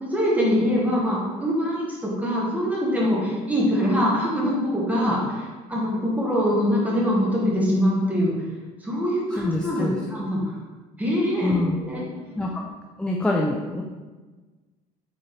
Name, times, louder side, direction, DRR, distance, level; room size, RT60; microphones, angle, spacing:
voice 1, 0.0-5.2 5.7-8.3 8.8-10.4 11.0-12.5, equal, 10° right, -5 dB, 1.4 m, -23 dB
voice 2, 9.3-10.0 11.4-11.8 12.4-12.6 13.0-13.8, left 2 dB, 5° left, -1 dB, 0.4 m, -25 dB
4.1 x 3.8 x 3.2 m, 1.3 s
supercardioid pair, 105°, 16 cm